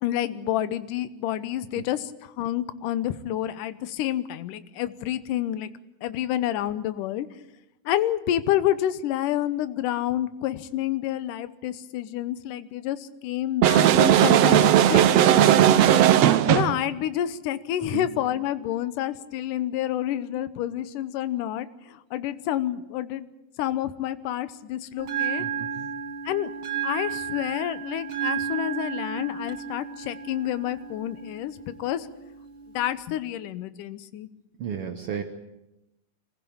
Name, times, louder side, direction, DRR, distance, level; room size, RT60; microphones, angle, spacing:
voice 1, 0.0-5.7 6.0-7.3 7.9-15.1 16.5-23.3 23.6-25.5 26.3-26.5 26.8-32.1 32.7-34.3, left 12 dB, 70° left, 14 dB, 2.3 m, -29 dB
sound 1, 13.6-16.8, right 11 dB, 85° right, 1.4 m, -17 dB
Bell, 25.0-33.0, right 7 dB, 40° right, 2.3 m, -33 dB
voice 2, 25.4-25.9 34.6-35.2, right 8 dB, 65° right, 6 dB, 1.5 m, -33 dB
24.0 x 16.0 x 8.7 m, 0.89 s
omnidirectional pair, 4.2 m